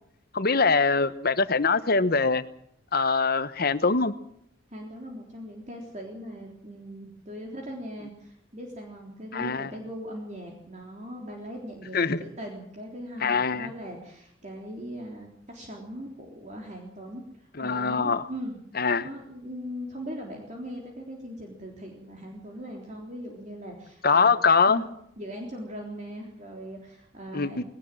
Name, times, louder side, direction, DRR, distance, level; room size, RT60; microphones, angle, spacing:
voice 1, 0.3-2.4 2.9-4.1 9.3-9.7 11.9-12.2 13.2-13.7 17.6-18.2 18.8-19.0 24.0-24.8 27.3-27.6, left 4 dB, 50° left, 13 dB, 1.1 m, -23 dB
voice 2, 4.7-18.6 19.0-24.9 25.2-27.6, equal, 35° right, 1 dB, 3.7 m, -40 dB
20.5 x 19.0 x 7.6 m, 0.69 s
head